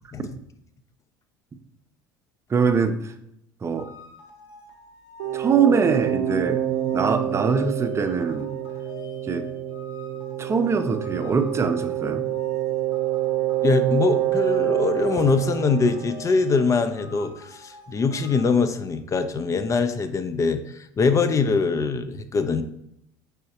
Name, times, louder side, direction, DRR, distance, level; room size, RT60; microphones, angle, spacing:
voice 1, 2.5-3.1 3.6-3.9 5.3-6.6 6.9-8.5 9.3-9.5 10.4-12.2, right 5 dB, 25° right, 8 dB, 0.5 m, -23 dB
sound 1, 3.8-18.5, left 4 dB, 60° left, 1.0 m, -46 dB
sound 2, 5.2-16.8, right 12 dB, 75° right, 0.5 m, -27 dB
voice 2, 13.6-22.6, left 4 dB, 30° left, 10 dB, 0.4 m, -23 dB
5.4 x 3.4 x 2.8 m, 0.78 s
hypercardioid pair, 80°, 11 cm